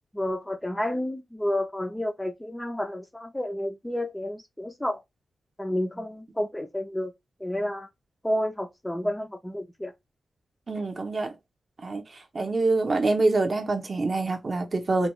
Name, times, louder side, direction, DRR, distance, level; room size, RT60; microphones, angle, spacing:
voice 1, 0.1-5.0 5.6-7.1 7.4-7.9 8.2-9.9, left 1 dB, 5° left, 0.4 m, -30 dB
voice 2, 10.7-11.4 11.8-12.0 12.3-15.1, right 3 dB, 40° right, 0.7 m, -25 dB
3.5 x 2.2 x 3.1 m
wide cardioid pair, 150°, 0 cm